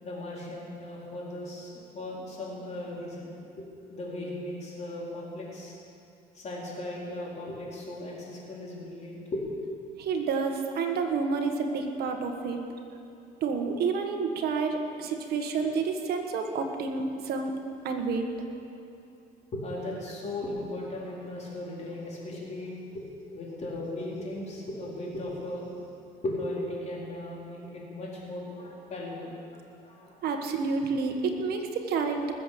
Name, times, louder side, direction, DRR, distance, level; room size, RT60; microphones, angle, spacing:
voice 1, 0.0-5.8 6.3-9.4 19.5-25.7 26.2-29.4 29.8-30.2, left 1 dB, 40° left, -4 dB, 4.4 m, -37 dB
voice 2, 10.0-12.6 13.4-17.5 17.8-18.3 30.2-32.3, right 4 dB, 70° right, 4 dB, 1.6 m, -29 dB
20.0 x 7.7 x 7.0 m, 2.6 s
cardioid pair, 110°, 17 cm